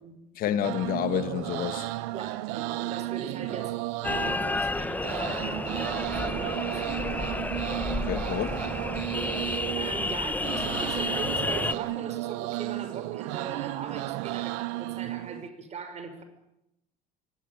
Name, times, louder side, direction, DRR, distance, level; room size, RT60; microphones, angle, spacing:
voice 1, 0.4-1.9 7.9-8.7, left 10 dB, 60° left, 1.9 m, -29 dB
sound 1, 0.6-15.5, right 19 dB, 90° right, 1.0 m, -34 dB
voice 2, 2.1-3.8 4.1-7.0 9.7-16.2, right 5 dB, 40° right, 5.6 m, -40 dB
sound 2, 4.0-11.7, left 2 dB, 10° left, 0.9 m, -31 dB
24.0 x 18.5 x 9.0 m
cardioid pair, 105°, 16 cm